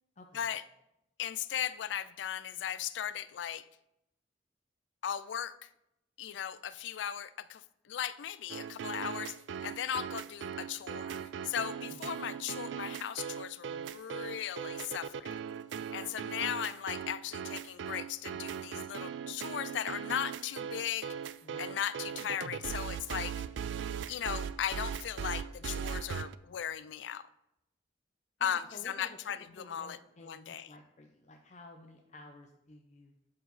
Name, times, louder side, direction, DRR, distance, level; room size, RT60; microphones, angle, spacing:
voice 1, 0.2-0.5 11.9-12.3 21.4-21.8 28.5-29.2 29.6-33.2, left 2 dB, 40° left, 2 dB, 0.7 m, -53 dB
voice 2, 1.2-3.6 5.0-5.7 6.2-9.4 9.6-11.2 11.4-15.4 15.9-21.1 21.6-23.3 24.1-27.3 28.4-30.7, left 9 dB, 85° left, 16 dB, 0.4 m, -37 dB
sound 1, 8.5-26.3, right 7 dB, 85° right, 0.3 m, -39 dB
11.0 x 4.8 x 4.0 m, 0.84 s
head